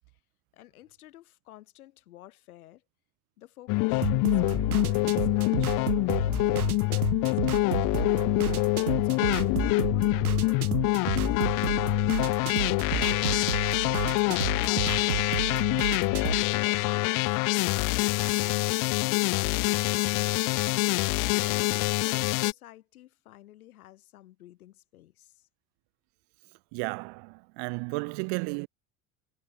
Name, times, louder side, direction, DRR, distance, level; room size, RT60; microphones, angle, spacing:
voice 1, 0.5-2.8 3.4-8.0 8.8-15.7 16.8-20.9 21.4-25.3, left 14 dB, 85° left, 7.2 m, -51 dB
sound 1, 3.7-22.5, left 26 dB, 50° left, 0.5 m, -25 dB
sound 2, 3.9-16.4, right 11 dB, 90° right, 3.6 m, -33 dB
voice 2, 26.7-28.7, right 38 dB, 70° right, 5.6 m, -33 dB
hypercardioid pair, 75°, 42 cm